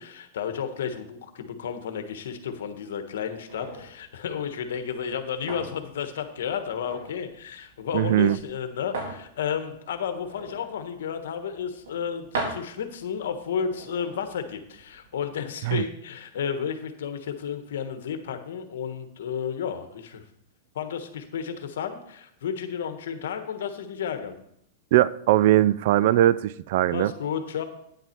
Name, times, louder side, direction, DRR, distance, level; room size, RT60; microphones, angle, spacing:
voice 1, 0.0-20.2 20.7-24.4 26.9-27.6, left 7 dB, 75° left, 1.3 m, -32 dB
sound 1, 3.5-15.3, right 3 dB, 80° right, 3.9 m, -41 dB
voice 2, 7.9-8.4 15.6-15.8 24.9-27.1, right 13 dB, 60° right, 0.4 m, -20 dB
9.6 x 8.0 x 4.5 m
hypercardioid pair, 125°, 0 cm